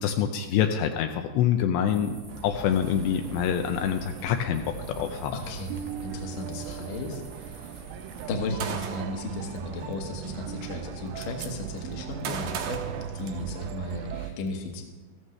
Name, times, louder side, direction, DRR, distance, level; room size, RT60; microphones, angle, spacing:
voice 1, 0.0-2.2 2.4-5.4, left 9 dB, 80° left, 5 dB, 2.7 m, -26 dB
sound 1, 1.9-8.3, right 1 dB, 20° right, 0.9 m, -49 dB
sound 2, 2.3-14.3, right 9 dB, 90° right, 2.1 m, -39 dB
voice 2, 5.3-7.9 8.3-14.8, left 2 dB, 65° left, 3 dB, 2.3 m, -35 dB
Gunshot gunfire, 8.6-9.2 10.4-10.5 10.8-11.5 12.2-13.7, right 7 dB, 75° right, 2.2 m, -35 dB
14.5 x 14.5 x 3.2 m, 1.3 s
omnidirectional pair, 5.3 m